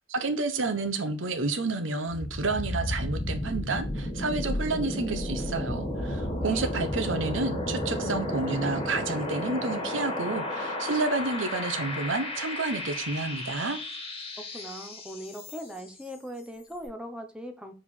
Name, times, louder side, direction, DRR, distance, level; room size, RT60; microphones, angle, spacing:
voice 1, 0.1-13.8, right 3 dB, 80° right, 1.0 m, -30 dB
sound 1, 2.1-15.9, left 1 dB, 30° left, 2.3 m, -33 dB
voice 2, 14.4-17.7, equal, 5° right, 1.1 m, -40 dB
5.0 x 4.4 x 5.3 m
head